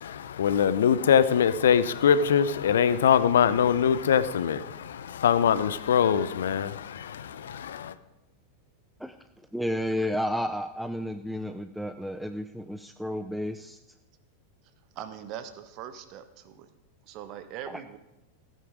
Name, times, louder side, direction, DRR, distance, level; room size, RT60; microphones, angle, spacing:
voice 1, 0.0-7.9, left 8 dB, 65° left, 0.6 m, -23 dB
voice 2, 9.5-13.8, equal, ahead, 0.5 m, -31 dB
voice 3, 14.9-16.7 17.0-18.0, right 10 dB, 40° right, 1.2 m, -41 dB
14.5 x 9.3 x 5.1 m
figure-of-eight pair, 90°, 0 cm